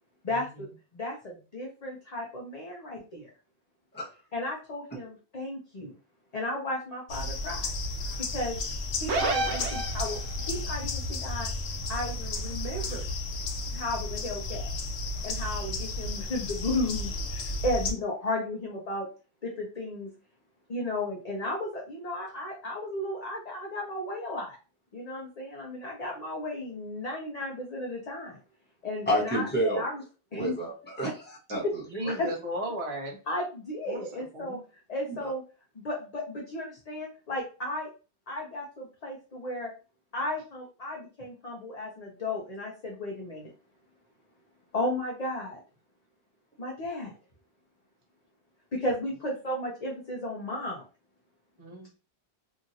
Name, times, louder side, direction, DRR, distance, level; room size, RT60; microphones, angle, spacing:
voice 1, 0.2-0.7 0.9-3.3 4.3-5.9 6.3-7.7 8.2-8.6 9.0-10.2 10.5-11.5 11.9-13.1 13.7-14.7 15.2-19.1 19.4-20.1 20.7-24.6 24.9-28.4 28.8-30.0 30.3-30.5 31.6-31.7 32.1-32.3 33.3-34.6 34.9-35.4 35.8-37.9 38.3-39.7 40.1-43.5 44.7-45.6 46.6-47.2 48.7-50.8, left 1 dB, 45° left, -2 dB, 0.7 m, -34 dB
sound 1, 7.1-17.9, left 2 dB, 75° left, 0.8 m, -33 dB
sound 2, 9.1-10.5, right 2 dB, 85° right, 1.0 m, -29 dB
voice 2, 29.1-29.8 30.3-32.1 35.0-35.3, right 1 dB, 10° left, -4 dB, 1.0 m, -30 dB
voice 3, 31.9-33.2 33.9-34.6 51.6-51.9, equal, 35° right, 0 dB, 0.7 m, -35 dB
2.9 x 2.5 x 2.6 m, 0.34 s
omnidirectional pair, 1.1 m